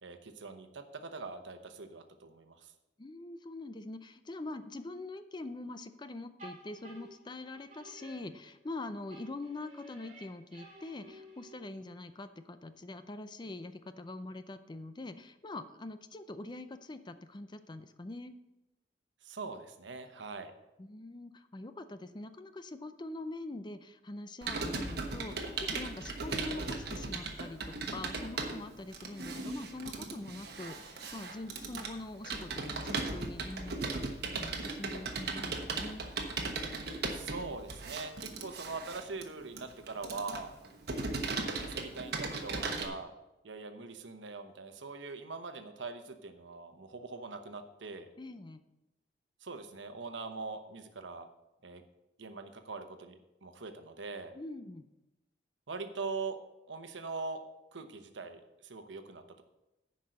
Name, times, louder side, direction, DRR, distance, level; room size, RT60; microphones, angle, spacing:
voice 1, 0.0-2.7 19.2-20.5 37.1-40.5 41.5-43.1 43.4-48.1 49.4-51.3 51.6-51.8 52.2-54.3 55.7-56.4 56.7-57.4 57.7-59.4, right 4 dB, 85° right, 8 dB, 1.0 m, -42 dB
voice 2, 3.0-18.3 20.8-36.1 48.2-48.6 54.3-54.9, left 2 dB, 25° left, 11 dB, 0.5 m, -44 dB
sound 1, 6.4-8.8 9.1-11.9, right 1 dB, 40° right, 3.5 m, -53 dB
Computer keyboard, 24.4-42.9, right 3 dB, 60° right, 1.2 m, -37 dB
10.0 x 5.4 x 6.4 m, 0.96 s
head